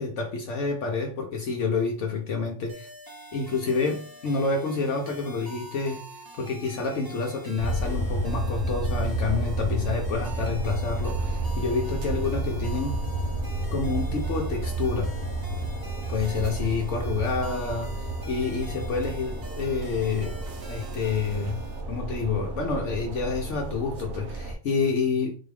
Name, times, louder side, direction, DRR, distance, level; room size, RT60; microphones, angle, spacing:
voice 1, 0.0-2.9 3.3-13.0 13.7-15.1 16.1-20.4 20.7-21.6 21.9-25.4, left 4 dB, 70° left, 1.0 m, -28 dB
sound 1, 2.7-21.8, equal, 35° right, 0.3 m, -45 dB
sound 2, 7.6-24.5, right 2 dB, 85° right, 1.2 m, -31 dB
3.9 x 2.3 x 3.3 m
omnidirectional pair, 1.4 m